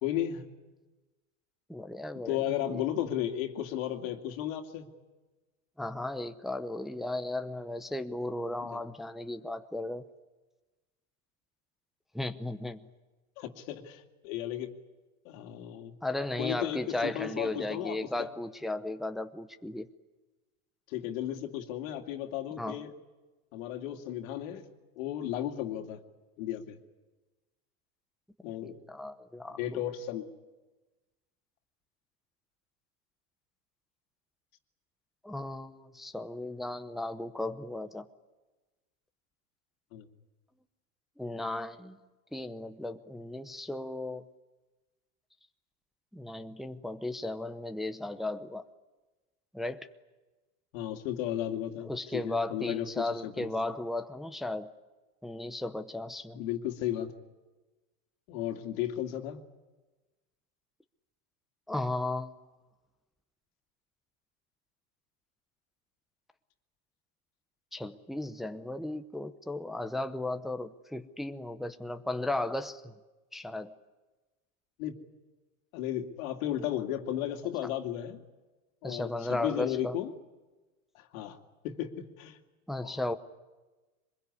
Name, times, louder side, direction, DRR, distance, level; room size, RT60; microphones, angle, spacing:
voice 1, 0.0-0.5 2.3-4.9 8.6-8.8 13.4-14.7 15.2-15.9 16.4-18.3 20.9-22.9 23.5-24.6 25.0-26.0 26.4-26.8 28.4-28.8 29.6-30.3 39.9-40.1 50.7-53.5 56.4-57.1 58.3-59.4 74.8-74.9 75.7-78.2 78.8-80.1 80.9-81.4 81.6-82.4 82.8-83.0, left 11 dB, 65° left, 4 dB, 2.5 m, -34 dB
voice 2, 1.7-2.8 5.8-10.0 12.1-12.8 16.0-19.9 22.6-22.8 28.9-29.6 35.2-38.1 41.2-42.0 42.3-44.2 46.1-48.6 49.5-49.9 51.8-54.7 55.2-56.4 61.7-62.3 67.7-72.9 73.3-73.7 78.8-79.9 82.7-83.1, left 2 dB, ahead, 7 dB, 0.8 m, -35 dB
24.0 x 21.5 x 9.7 m, 1.2 s
supercardioid pair, 120°, 44 cm